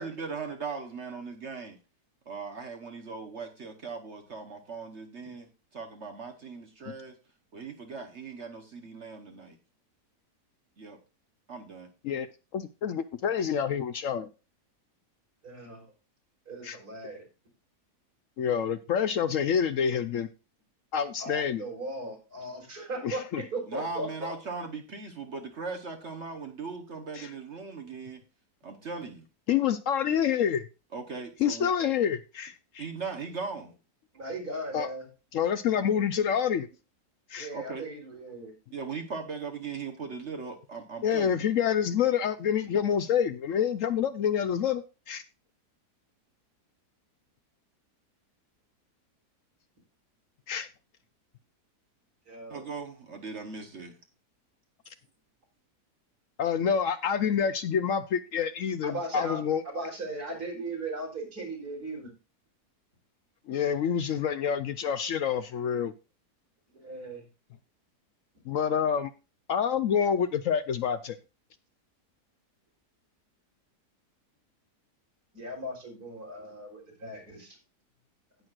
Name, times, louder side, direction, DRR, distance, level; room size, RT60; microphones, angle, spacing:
voice 1, 0.0-1.8 2.3-7.2 7.5-9.6 10.8-11.0 11.5-11.9 23.7-28.2 28.6-29.2 30.9-31.7 32.8-33.7 37.5-37.8 38.7-41.4 52.5-54.0, right 4 dB, 50° right, 1.2 m, -39 dB
voice 2, 12.5-14.3 16.6-16.8 18.4-20.3 20.9-21.6 23.0-23.4 27.1-27.3 29.5-30.7 31.4-32.9 34.7-34.9 35.3-36.7 37.3-37.5 41.0-45.2 50.5-50.7 56.4-59.6 63.5-65.9 68.5-69.1 69.5-71.2, left 8 dB, 65° left, 0.8 m, -27 dB
voice 3, 15.4-15.9 16.5-17.3 21.2-24.3 34.1-35.1 37.4-38.5 52.3-52.7 58.8-62.1 66.7-67.2 75.3-77.6, right 2 dB, 65° right, 4.3 m, -38 dB
17.5 x 6.2 x 2.4 m
omnidirectional pair, 1.7 m